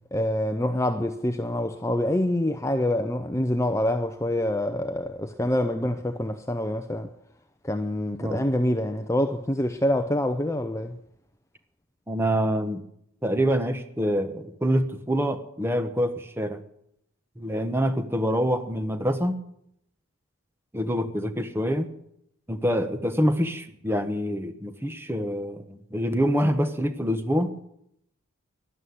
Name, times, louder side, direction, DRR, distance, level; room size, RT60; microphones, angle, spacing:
voice 1, 0.1-7.1 7.6-11.0, left 1 dB, 15° left, 0.6 m, -26 dB
voice 2, 12.1-12.8 13.2-16.6 17.4-19.3 20.7-21.9 22.5-27.5, equal, 10° right, 1.1 m, -26 dB
12.5 x 11.5 x 9.5 m
head